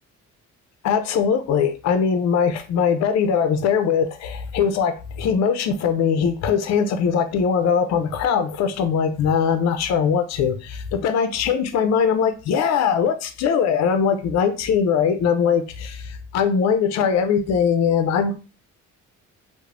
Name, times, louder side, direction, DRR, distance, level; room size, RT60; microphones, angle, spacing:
voice 1, 0.8-18.4, left 6 dB, 60° left, 0.4 m, -21 dB
3.1 x 2.0 x 2.4 m
cardioid pair, 90°, 30 cm